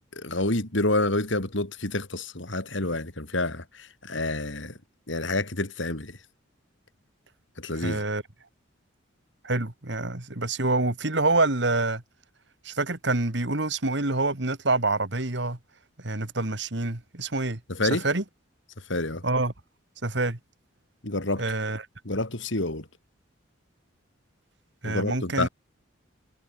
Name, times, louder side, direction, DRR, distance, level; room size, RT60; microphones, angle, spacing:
voice 1, 0.1-4.8 5.1-6.2 7.6-8.0 17.7-18.0 18.9-19.2 21.0-21.4 22.0-22.9 24.8-25.5, left 2 dB, 65° left, 3.3 m, -28 dB
voice 2, 7.8-8.2 9.4-12.0 12.7-15.6 16.0-17.6 18.0-18.2 19.2-19.5 20.0-20.4 21.4-21.8 24.8-25.5, right 2 dB, 60° right, 2.2 m, -26 dB
head